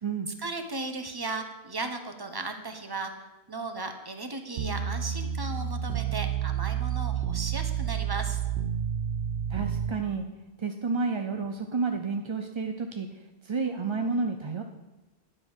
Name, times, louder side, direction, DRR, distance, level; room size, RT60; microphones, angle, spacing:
voice 1, 0.4-3.1 3.5-8.4, right 3 dB, 25° right, 6 dB, 0.8 m, -36 dB
sound 1, 4.6-9.9, right 9 dB, 85° right, 0.9 m, -30 dB
voice 2, 9.5-10.2 10.6-13.1 13.4-14.6, right 4 dB, 40° right, 5 dB, 0.4 m, -30 dB
10.0 x 5.5 x 6.2 m, 1.0 s
omnidirectional pair, 1.1 m